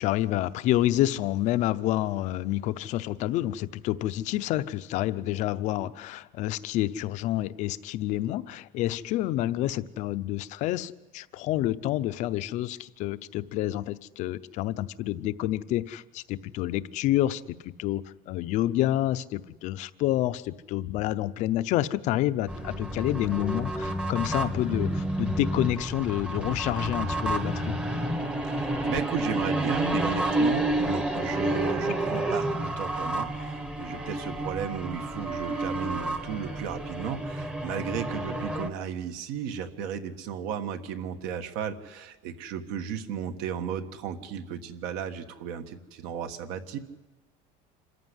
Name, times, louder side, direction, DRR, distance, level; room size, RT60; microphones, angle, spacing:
voice 1, 0.0-27.8, left 14 dB, 45° left, 13 dB, 0.7 m, -28 dB
sound 1, 22.5-38.7, right 1 dB, 5° right, 1.0 m, -30 dB
voice 2, 28.5-46.8, right 8 dB, 65° right, 7 dB, 1.5 m, -34 dB
Wind instrument woodwind instrument, 30.1-37.5, right 7 dB, 35° right, 1.1 m, -43 dB
27.0 x 14.5 x 9.7 m, 1.1 s
cardioid pair, 180°, 17 cm